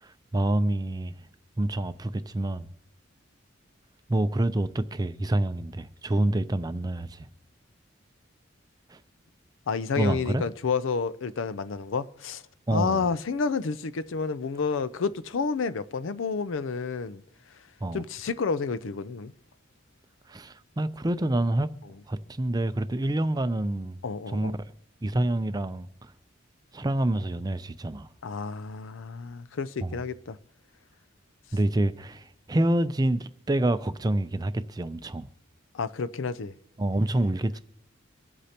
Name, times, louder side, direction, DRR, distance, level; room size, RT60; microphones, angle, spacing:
voice 1, 0.0-1.1 1.6-2.7 4.1-7.3 8.9-9.0 10.0-10.4 12.7-13.0 17.8-18.0 20.3-21.7 22.1-24.0 24.3-24.6 25.0-26.1 26.7-28.1 29.8-30.0 31.5-35.3 36.8-37.6, right 1 dB, 20° right, 0.4 m, -27 dB
voice 2, 9.7-12.4 12.7-17.2 17.9-19.3 24.0-24.5 28.2-30.4 35.7-36.5, left 5 dB, 80° left, 0.5 m, -30 dB
24.0 x 8.2 x 2.9 m
head